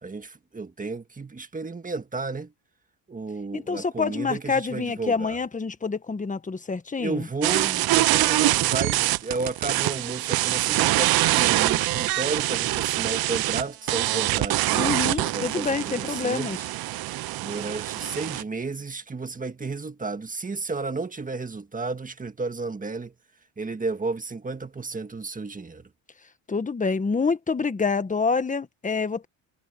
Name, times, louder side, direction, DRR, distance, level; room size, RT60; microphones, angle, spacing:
voice 1, 0.0-2.5 3.1-5.4 7.0-16.5 17.4-23.1 23.6-25.9, right 3 dB, 15° right, 1.7 m, -33 dB
voice 2, 3.5-7.3 14.7-16.6 26.5-29.3, left 4 dB, 15° left, 1.4 m, -27 dB
sound 1, 7.4-18.4, right 17 dB, 50° right, 0.5 m, -24 dB
cardioid pair, 120°, 49 cm